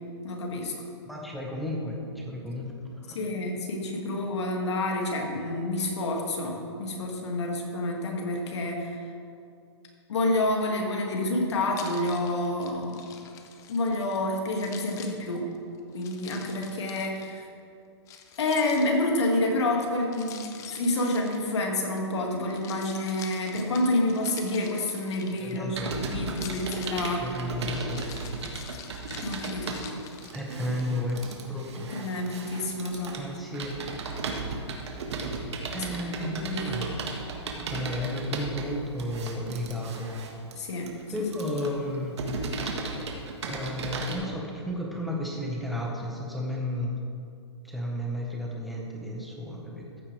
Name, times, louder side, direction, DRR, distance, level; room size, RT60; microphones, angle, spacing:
voice 1, 0.2-0.8 3.1-9.0 10.1-13.1 13.7-15.5 15.9-17.5 18.4-27.4 29.2-29.8 31.8-33.2 36.2-37.0 40.6-41.3, left 1 dB, 70° left, 0 dB, 2.3 m, -29 dB
voice 2, 1.0-3.3 25.4-25.9 27.2-28.0 30.3-31.9 33.2-33.8 35.7-36.9 37.5-40.1 41.1-42.2 42.6-42.7 43.5-47.0 47.6-50.0, left 1 dB, ahead, -3 dB, 1.4 m, -33 dB
Keys jangling, 11.7-14.2 14.5-17.3 18.1-19.3 20.1-22.0 22.4-25.8 26.3-30.8, left 7 dB, 20° left, 0.7 m, -46 dB
Computer keyboard, 25.7-44.2, right 3 dB, 70° right, 1.6 m, -35 dB
14.5 x 8.3 x 3.4 m, 2.4 s
hypercardioid pair, 145°, 15 cm